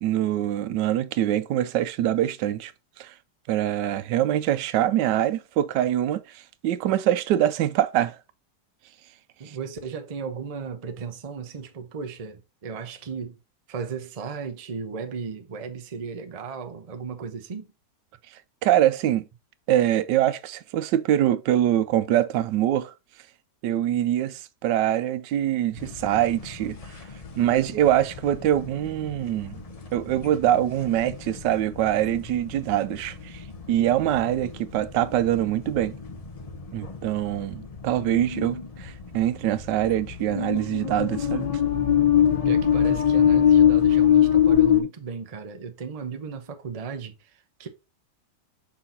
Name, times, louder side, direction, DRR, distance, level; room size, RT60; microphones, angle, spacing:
voice 1, 0.0-2.7 3.0-3.1 3.5-8.2 9.5-9.6 18.6-19.2 19.7-22.9 23.6-26.8 27.3-29.6 29.9-35.9 36.7-41.5, right 12 dB, 85° right, 1.2 m, -24 dB
voice 2, 9.4-13.4 13.7-17.7 25.7-25.8 42.4-47.7, right 5 dB, 40° right, 0.5 m, -35 dB
sound 1, 25.8-44.8, left 9 dB, 50° left, 0.4 m, -23 dB
5.6 x 4.1 x 4.2 m
omnidirectional pair, 1.8 m